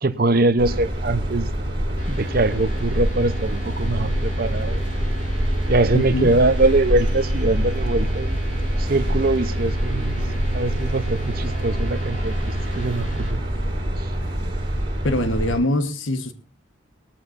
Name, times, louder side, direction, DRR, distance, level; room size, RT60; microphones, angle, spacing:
voice 1, 0.0-1.5 2.1-4.8 5.7-10.2 10.5-13.4 14.0-14.1, right 2 dB, 45° right, 0.8 m, -22 dB
sound 1, 0.6-15.6, equal, 25° right, 5.9 m, -25 dB
sound 2, 2.0-13.3, right 2 dB, 40° left, 4.9 m, -38 dB
voice 2, 5.9-6.3 15.0-16.3, left 1 dB, 75° left, 1.3 m, -23 dB
18.5 x 14.0 x 2.6 m
head